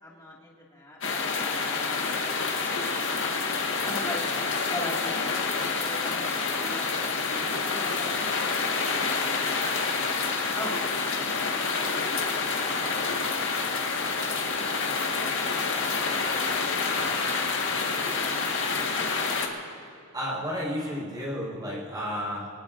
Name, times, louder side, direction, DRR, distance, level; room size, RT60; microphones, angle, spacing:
voice 1, 0.0-1.9 3.8-4.4 4.7-10.7 11.6-12.2 16.0-16.3 16.8-17.3 17.7-17.9 18.6-18.9, left 1 dB, 15° left, -4 dB, 2.0 m, -42 dB
sound 1, 1.0-19.5, left 4 dB, 55° left, 1.6 m, -28 dB
voice 2, 20.1-22.5, equal, 20° right, -4 dB, 4.5 m, -32 dB
24.0 x 19.5 x 2.6 m, 2.6 s
head